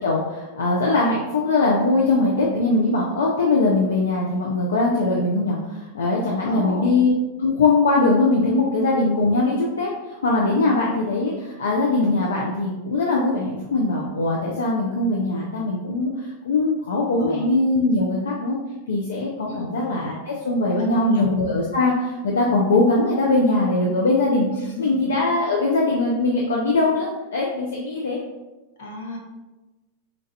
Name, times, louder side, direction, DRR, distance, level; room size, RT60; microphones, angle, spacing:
voice 1, 0.0-7.1 7.4-18.6 18.9-28.2, left 2 dB, 85° left, -2 dB, 0.5 m, -21 dB
voice 2, 6.4-6.9 17.2-17.5 19.5-19.7 20.7-21.3 24.8-25.0 28.8-29.2, left 1 dB, 70° left, -1 dB, 1.0 m, -33 dB
4.4 x 2.5 x 2.7 m, 1.1 s
hypercardioid pair, 105°, 0 cm